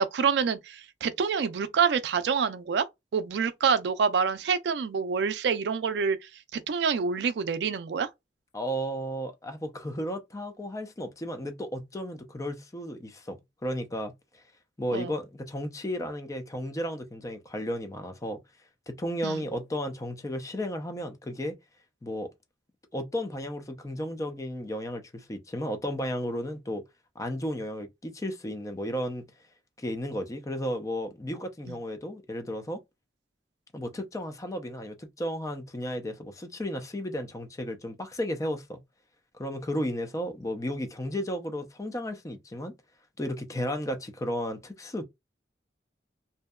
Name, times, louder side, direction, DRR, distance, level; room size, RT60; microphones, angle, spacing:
voice 1, 0.0-2.8 3.1-8.1 14.9-15.1 19.2-19.4 31.7-31.8, right 6 dB, 70° right, 0.4 m, -27 dB
voice 2, 8.5-14.1 14.8-18.4 18.9-21.5 22.0-22.3 22.9-26.8 27.2-29.2 29.8-32.8 33.7-38.8 39.4-42.7 43.2-45.0, equal, 20° left, 0.5 m, -33 dB
2.7 x 2.2 x 2.2 m
head